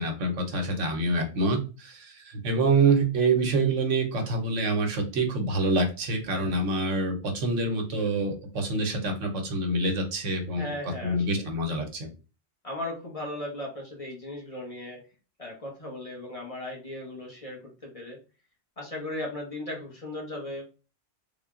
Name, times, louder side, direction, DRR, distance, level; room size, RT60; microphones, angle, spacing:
voice 1, 0.0-10.7 11.0-12.1, right 2 dB, 80° right, 4 dB, 1.2 m, -26 dB
voice 2, 10.5-11.4 12.6-15.0 15.4-18.2 18.8-20.6, left 1 dB, 30° left, -1 dB, 0.9 m, -37 dB
3.6 x 2.2 x 3.6 m, 0.33 s
omnidirectional pair, 1.3 m